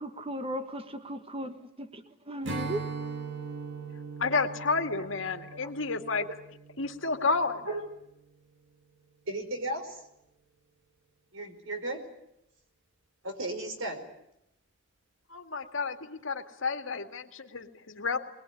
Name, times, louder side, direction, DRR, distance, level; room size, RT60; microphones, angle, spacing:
voice 1, 0.0-2.9, right 1 dB, 30° right, 9 dB, 1.6 m, -37 dB
Strum, 2.4-7.9, right 4 dB, 60° right, 2.1 m, -40 dB
voice 2, 4.2-6.3 6.8-7.7 15.3-18.2, left 4 dB, 70° left, 6 dB, 2.2 m, -31 dB
voice 3, 9.3-10.0 11.3-12.0 13.2-14.1, right 2 dB, 75° right, 6 dB, 4.8 m, -35 dB
22.0 x 21.0 x 9.9 m, 0.82 s
head